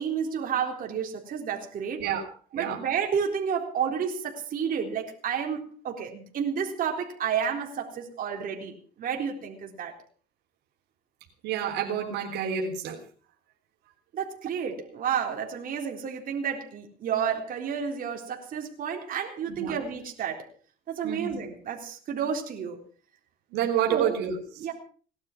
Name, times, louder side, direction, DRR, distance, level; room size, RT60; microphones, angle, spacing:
voice 1, 0.0-2.1 2.5-9.9 14.1-20.5 20.9-22.8 23.9-24.2 24.6-24.7, right 7 dB, 55° right, 2 dB, 3.9 m, -31 dB
voice 2, 2.0-2.8 11.4-13.0 19.5-19.7 21.0-21.4 23.5-24.4, right 8 dB, 85° right, 2 dB, 3.7 m, -29 dB
19.0 x 12.0 x 5.9 m, 0.42 s
cardioid pair, 110°, 17 cm